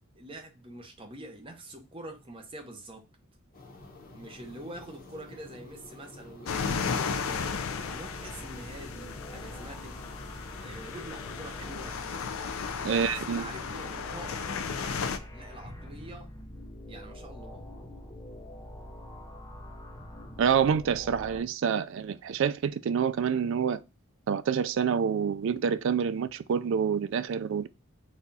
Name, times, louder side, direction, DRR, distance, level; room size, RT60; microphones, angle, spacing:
voice 1, 0.2-3.0 4.1-7.5 7.9-10.0 10.6-11.9 12.7-15.1 15.3-16.3 16.9-17.6, right 1 dB, 25° right, 0.8 m, -45 dB
sound 1, 3.5-11.9, left 2 dB, 40° left, 1.0 m, -50 dB
sound 2, 6.5-15.2, left 6 dB, 75° left, 0.5 m, -35 dB
sound 3, 7.2-21.4, left 1 dB, 15° left, 0.6 m, -45 dB
voice 2, 12.8-13.5 20.4-23.8 24.3-27.7, right 7 dB, 60° right, 0.3 m, -27 dB
4.1 x 2.4 x 4.0 m
head